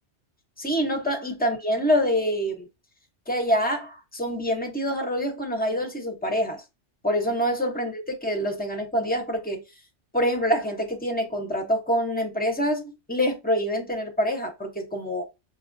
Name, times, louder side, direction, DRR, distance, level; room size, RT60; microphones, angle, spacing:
voice 1, 0.6-2.7 3.3-6.6 7.0-9.6 10.1-15.3, equal, 10° left, 0.7 m, -26 dB
5.7 x 2.3 x 2.6 m
omnidirectional pair, 1.2 m